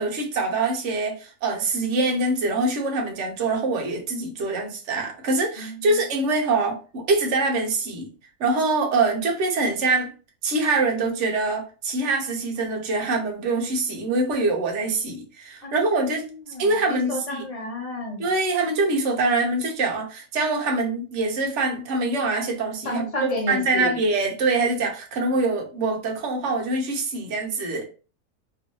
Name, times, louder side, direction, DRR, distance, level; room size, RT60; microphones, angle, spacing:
voice 1, 0.0-8.1 8.4-10.1 10.4-16.3 16.6-17.4 18.2-23.1 23.5-27.9, right 3 dB, 55° right, 1.1 m, -24 dB
voice 2, 5.6-6.0 15.6-15.8 16.5-18.3 22.8-24.0, left 2 dB, 30° left, 0.9 m, -31 dB
3.0 x 2.6 x 3.0 m
omnidirectional pair, 1.7 m